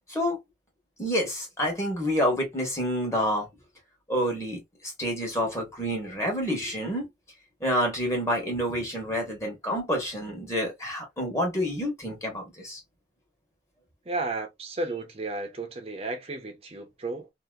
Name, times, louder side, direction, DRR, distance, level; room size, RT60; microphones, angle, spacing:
voice 1, 1.0-3.5 4.1-4.6 5.0-7.1 7.6-12.8, equal, 15° left, 1.3 m, -28 dB
voice 2, 14.0-17.3, right 2 dB, 35° right, 0.8 m, -33 dB
2.8 x 2.7 x 2.4 m
head